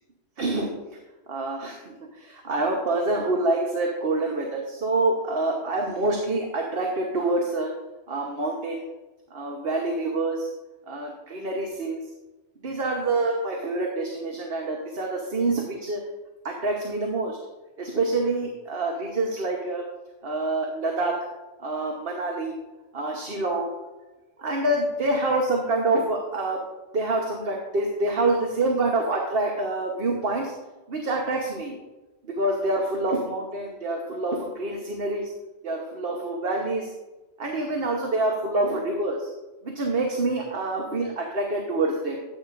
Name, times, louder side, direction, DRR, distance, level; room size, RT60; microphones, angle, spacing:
voice 1, 0.4-0.7 1.3-7.7 8.1-8.8 9.3-10.5 10.9-12.0 12.6-16.0 16.4-17.4 17.8-19.8 20.2-21.1 21.6-22.6 22.9-23.7 24.4-26.6 26.9-30.5 30.9-31.8 32.3-35.3 35.6-36.9 37.4-39.3 39.6-42.2, right 2 dB, 55° right, 1 dB, 1.3 m, -26 dB
13.5 x 8.7 x 2.5 m, 1.1 s
omnidirectional pair, 1.2 m